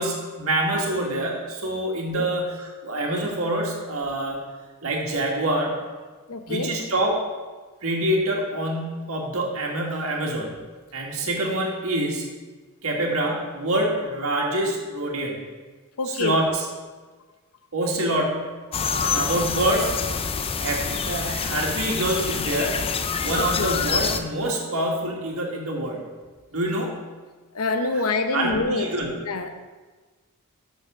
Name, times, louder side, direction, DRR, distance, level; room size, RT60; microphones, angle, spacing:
voice 1, 0.0-4.4 4.8-5.8 6.5-7.2 7.8-10.6 10.9-12.3 12.8-15.4 16.0-16.7 17.7-18.5 19.0-20.0 20.6-22.9 23.2-26.0 26.5-27.0 27.9-28.0 28.3-29.1, right 1 dB, 65° right, 0 dB, 1.8 m, -26 dB
voice 2, 6.3-6.7 16.0-16.4 23.4-23.7 27.5-28.9 29.2-29.5, left 3 dB, 75° left, 8 dB, 0.8 m, -26 dB
sound 1, 18.7-24.2, left 5 dB, 25° left, 0.4 m, -26 dB
6.9 x 6.4 x 6.3 m, 1.4 s
head